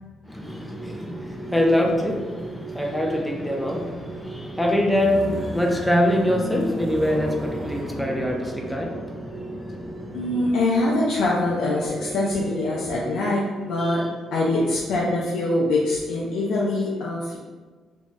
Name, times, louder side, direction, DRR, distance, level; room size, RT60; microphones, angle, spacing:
voice 1, 0.3-10.5 13.8-14.1, left 1 dB, ahead, 0 dB, 0.5 m, -24 dB
sound 1, 0.7-16.0, right 3 dB, 55° right, 0.9 m, -39 dB
sound 2, 3.6-12.2, equal, 15° right, 1.0 m, -38 dB
voice 2, 10.1-14.0 14.3-17.4, left 2 dB, 80° left, -5 dB, 0.4 m, -23 dB
2.6 x 2.2 x 3.0 m, 1.4 s
cardioid pair, 90°, 0 cm